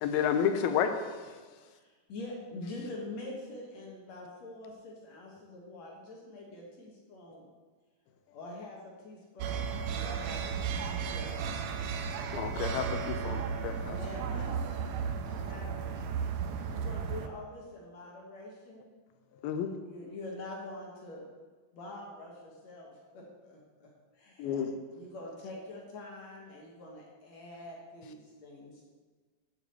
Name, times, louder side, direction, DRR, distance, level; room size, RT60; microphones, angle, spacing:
voice 1, 0.0-0.9 12.3-14.0 19.4-19.7 24.4-24.7, left 8 dB, 90° left, 7 dB, 2.6 m, -30 dB
voice 2, 1.7-7.5 8.3-9.7 11.0-11.5 13.2-13.4 14.0-14.6 15.1-15.8 16.7-18.9 19.6-21.2 21.7-24.6 24.9-28.9, left 2 dB, 60° left, -2 dB, 2.2 m, -45 dB
sound 1, 9.4-17.3, right 6 dB, 85° right, 1.9 m, -34 dB
voice 3, 9.8-12.3, right 2 dB, 65° right, -2 dB, 1.5 m, -50 dB
7.2 x 7.2 x 7.9 m, 1.4 s
omnidirectional pair, 4.3 m